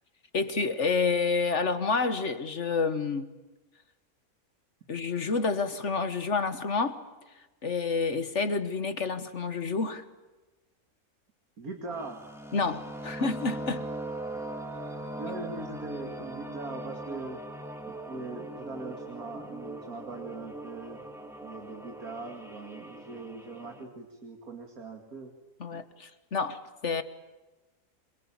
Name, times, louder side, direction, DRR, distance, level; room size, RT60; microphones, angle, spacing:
voice 1, 0.3-3.3 4.9-7.0 7.6-10.0 12.5-13.9 25.6-27.0, left 4 dB, 55° left, 10 dB, 1.6 m, -29 dB
voice 2, 11.6-12.2 14.3-14.5 15.2-17.4 17.9-21.0 21.4-25.3, right 3 dB, 75° right, 4 dB, 2.8 m, -41 dB
sound 1, 11.9-23.8, right 1 dB, ahead, 2.6 m, -40 dB
27.5 x 22.5 x 8.8 m, 1.1 s
omnidirectional pair, 1.6 m